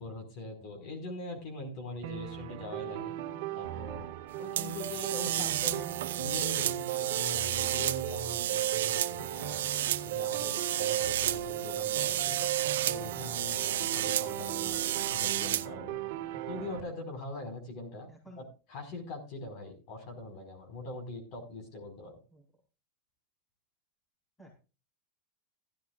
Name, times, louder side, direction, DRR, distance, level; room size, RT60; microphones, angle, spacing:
voice 1, 0.0-3.1 3.5-5.8 6.2-9.7 10.0-12.4 12.9-16.0 16.4-18.1 18.4-18.5 18.7-22.1, left 2 dB, 40° left, 3 dB, 4.9 m, -42 dB
sound 1, 2.0-16.8, right 13 dB, 55° right, 1.8 m, -37 dB
sound 2, 4.6-15.7, right 12 dB, 90° right, 0.9 m, -32 dB
voice 2, 18.1-18.4 22.3-22.4 24.4-24.6, equal, 10° left, -1 dB, 4.4 m, -53 dB
16.0 x 13.0 x 2.5 m, 0.32 s
supercardioid pair, 170°, 0 cm